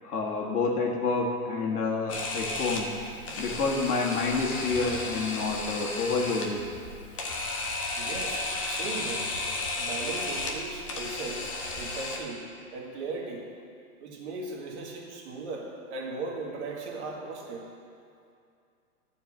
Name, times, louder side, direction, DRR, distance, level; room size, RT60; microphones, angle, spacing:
voice 1, 0.0-2.9 3.4-6.6, left 3 dB, 80° left, 0 dB, 1.8 m, -28 dB
Camera, 2.1-12.2, left 2 dB, 25° left, 0.5 m, -34 dB
voice 2, 8.0-9.3 9.8-13.4 14.0-17.7, right 3 dB, 50° right, -1 dB, 1.8 m, -38 dB
10.5 x 4.6 x 7.5 m, 2.4 s
hypercardioid pair, 165°, 45 cm